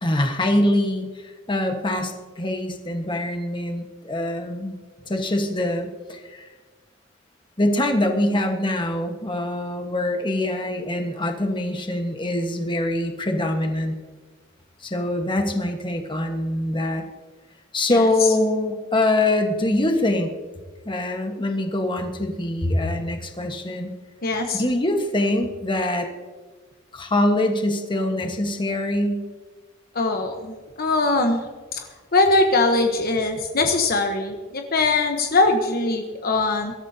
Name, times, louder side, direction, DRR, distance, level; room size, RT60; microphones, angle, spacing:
voice 1, 0.0-4.8 5.1-6.5 7.6-13.9 14.8-17.0 17.7-20.3 20.8-23.9 24.5-26.1 26.9-29.3, left 1 dB, 25° left, 4 dB, 1.4 m, -24 dB
voice 2, 24.2-24.6 29.9-31.4 31.7-31.8 32.1-36.7, left 2 dB, 50° left, 4 dB, 1.1 m, -21 dB
23.0 x 13.0 x 2.8 m, 1.4 s
head